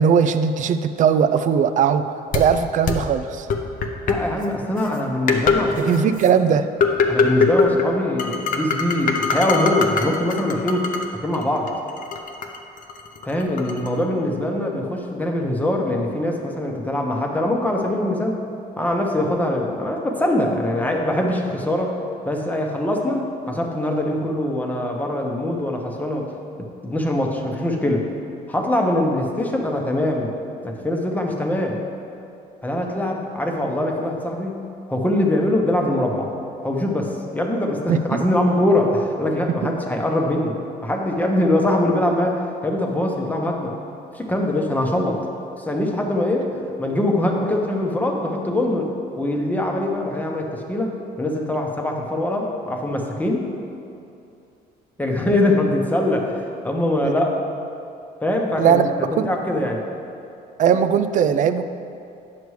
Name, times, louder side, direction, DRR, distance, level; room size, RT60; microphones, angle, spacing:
voice 1, 0.0-2.1 2.3-3.5 5.8-6.7 37.9-38.2 39.6-39.7 57.0-57.1 58.6-58.9 59.2-59.3 60.6-61.6, right 7 dB, 50° right, 11 dB, 0.4 m, -19 dB
sound 1, 2.3-2.4 2.9-3.0 3.5-4.1 4.8-4.9 5.3-5.6 5.9-6.3 6.8-7.9 8.2-11.1 11.3-13.9, left 5 dB, 55° left, 0.7 m, -21 dB
voice 2, 4.1-6.0 7.1-11.7 13.2-18.4 18.8-21.9 22.2-26.3 26.6-28.1 28.5-30.3 30.6-31.8 32.6-36.3 36.6-43.7 44.1-45.2 45.6-48.9 49.2-53.5 55.0-57.3 58.2-59.8, left 1 dB, 10° left, 1 dB, 0.9 m, -23 dB
9.5 x 6.7 x 3.2 m, 2.7 s
cardioid pair, 110°, 17 cm